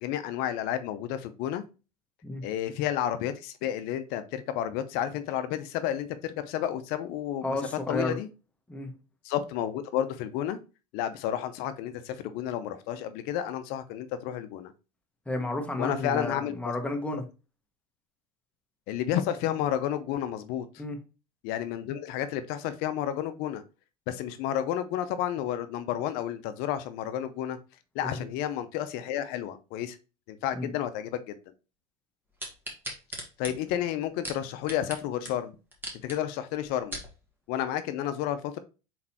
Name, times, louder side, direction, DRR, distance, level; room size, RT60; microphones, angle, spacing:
voice 1, 0.0-1.6 2.4-7.6 7.9-8.3 9.2-10.6 10.9-14.7 15.8-16.5 18.9-20.8 21.4-23.6 24.1-27.6 27.9-30.0 30.3-31.3 33.4-35.5 36.0-37.0 37.5-38.6, left 11 dB, 60° left, 11 dB, 0.6 m, -31 dB
voice 2, 7.4-8.2 8.7-8.9 15.3-17.2 20.8-21.0 28.0-28.3 30.6-30.7, left 2 dB, 5° left, 4 dB, 1.1 m, -32 dB
sound 1, 32.4-35.0 35.2-35.3 35.7-36.2 36.6-37.1 37.7-37.8, right 1 dB, 10° right, 1.6 m, -38 dB
4.1 x 3.9 x 2.9 m, 0.32 s
supercardioid pair, 100°, 18 cm